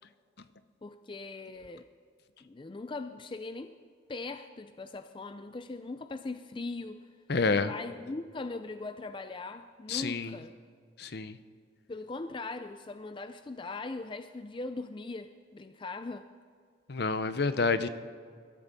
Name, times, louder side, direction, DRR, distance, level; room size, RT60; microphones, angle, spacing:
voice 1, 0.8-1.9 2.4-3.7 4.1-7.1 7.4-10.5 11.9-16.3, left 3 dB, 25° left, 10 dB, 0.4 m, -40 dB
voice 2, 7.3-7.7 9.9-10.3 11.0-11.4 16.9-17.9, left 4 dB, 55° left, 12 dB, 0.7 m, -28 dB
22.0 x 13.0 x 4.0 m, 2.2 s
head